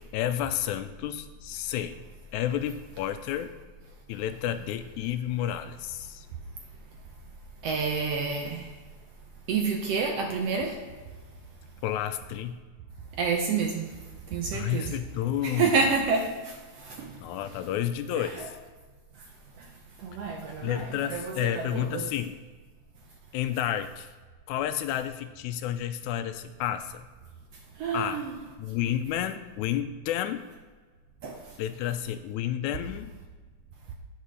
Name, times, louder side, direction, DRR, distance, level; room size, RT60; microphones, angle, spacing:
voice 1, 0.1-2.0 2.3-3.5 4.1-6.3 11.8-12.6 14.5-15.7 17.2-18.6 20.6-22.4 23.3-24.1 24.5-27.0 27.9-28.3 28.6-30.4 31.6-33.1, left 11 dB, 80° left, 10 dB, 1.9 m, -31 dB
voice 2, 7.6-8.7 9.5-10.8 13.2-13.9 14.3-14.9 15.4-17.2 18.1-18.3 19.6-19.7 20.0-22.1 27.8-28.3 31.2-31.4, right 5 dB, 70° right, 2 dB, 1.6 m, -29 dB
8.5 x 5.4 x 6.3 m, 1.4 s
omnidirectional pair, 3.5 m